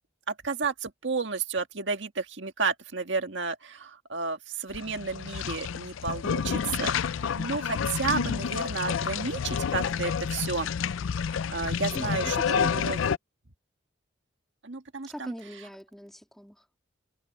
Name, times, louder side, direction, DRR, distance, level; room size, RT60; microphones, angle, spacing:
voice 1, 0.3-10.7 11.3-13.0 14.6-15.3, right 4 dB, 65° right, 1.8 m, -32 dB
sound 1, 4.7-13.2, left 7 dB, 85° left, 0.4 m, -29 dB
voice 2, 11.9-12.9 15.1-16.6, equal, ahead, 2.9 m, -41 dB
head